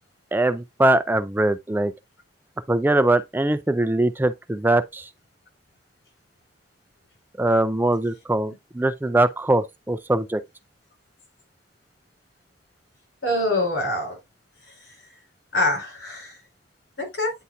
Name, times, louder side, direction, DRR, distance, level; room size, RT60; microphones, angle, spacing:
voice 1, 0.3-1.9 2.7-5.1 7.4-10.4, right 2 dB, 10° right, 0.3 m, -22 dB
voice 2, 13.2-14.2 15.5-16.3 17.0-17.3, left 1 dB, 85° left, 4.4 m, -24 dB
9.3 x 4.2 x 2.4 m
head